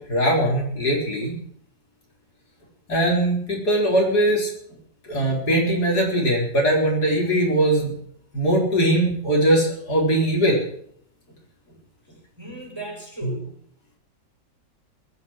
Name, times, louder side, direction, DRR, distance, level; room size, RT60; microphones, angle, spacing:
voice 1, 0.1-1.3 2.9-4.5 5.1-7.9 8.3-10.6 13.2-13.3, right 1 dB, 60° left, -2 dB, 4.9 m, -20 dB
voice 2, 12.4-13.6, right 2 dB, 15° right, -2 dB, 5.6 m, -36 dB
20.5 x 7.7 x 7.5 m, 0.63 s
omnidirectional pair, 1.9 m